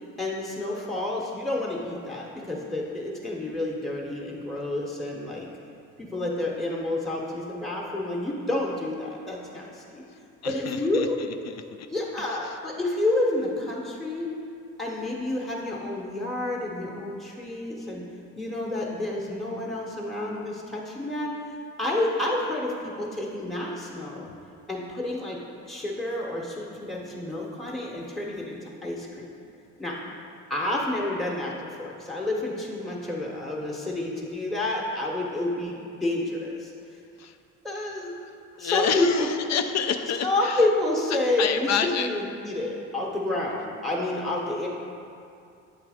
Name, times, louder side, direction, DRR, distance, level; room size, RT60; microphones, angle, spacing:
voice 1, 0.2-5.5 6.0-10.0 10.4-11.2 11.9-14.3 14.8-18.1 18.4-24.3 24.7-25.4 25.7-29.3 29.8-30.0 30.5-37.0 37.6-38.1 38.6-39.3 40.2-44.7, left 2 dB, ahead, -3 dB, 0.8 m, -29 dB
voice 2, 10.4-11.9 12.2-12.6 37.2-37.4 38.5-40.7 41.4-42.1, left 7 dB, 60° left, 8 dB, 0.5 m, -29 dB
7.8 x 3.3 x 4.9 m, 2.5 s
cardioid pair, 90°, 30 cm